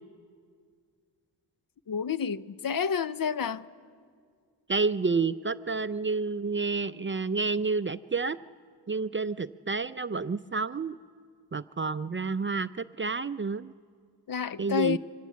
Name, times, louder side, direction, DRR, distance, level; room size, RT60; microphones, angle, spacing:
voice 1, 1.9-3.6 14.3-15.0, left 7 dB, 50° left, 0.7 m, -29 dB
voice 2, 4.7-8.4 8.9-11.0 11.5-13.7 14.6-15.0, right 4 dB, 30° right, 0.5 m, -29 dB
24.5 x 16.5 x 7.4 m
cardioid pair, 45°, 45 cm